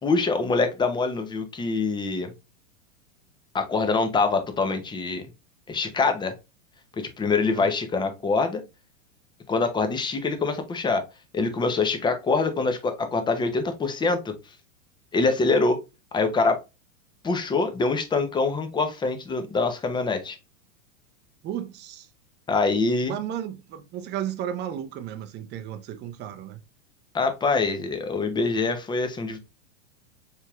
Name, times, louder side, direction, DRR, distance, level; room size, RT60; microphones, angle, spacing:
voice 1, 0.0-2.3 3.5-5.3 5.7-6.3 7.0-8.6 9.5-11.0 11.3-14.3 15.1-15.8 16.1-16.6 17.2-20.4 22.5-23.2 27.1-29.4, left 3 dB, 10° left, 0.7 m, -24 dB
voice 2, 21.4-22.1 23.0-26.6, right 10 dB, 30° right, 0.6 m, -34 dB
4.4 x 3.4 x 2.3 m
hypercardioid pair, 115°, 38 cm